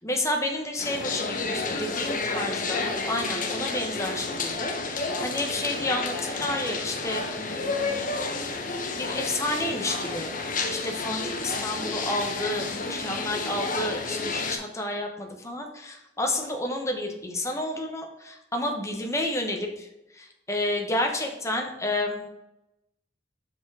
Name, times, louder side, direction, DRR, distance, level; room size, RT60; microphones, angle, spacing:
voice 1, 0.0-8.1 9.0-10.3 10.7-19.9 20.1-22.3, left 1 dB, 15° left, 3 dB, 0.9 m, -30 dB
sound 1, 0.8-14.6, left 3 dB, 45° left, 0.8 m, -30 dB
5.9 x 5.0 x 4.8 m, 0.92 s
head